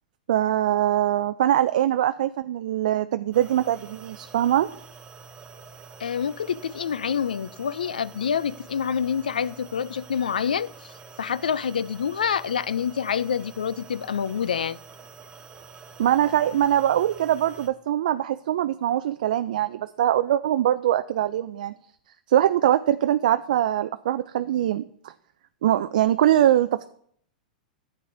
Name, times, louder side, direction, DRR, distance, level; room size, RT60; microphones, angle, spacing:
voice 1, 0.3-4.7 16.0-21.7 22.3-25.1 25.6-26.9, right 12 dB, 65° right, 0.3 m, -22 dB
sound 1, 3.3-17.7, right 5 dB, 30° right, 1.7 m, -46 dB
voice 2, 6.0-10.9 11.2-14.8, left 7 dB, 80° left, 0.4 m, -27 dB
13.5 x 8.6 x 2.6 m
hypercardioid pair, 100°, 5 cm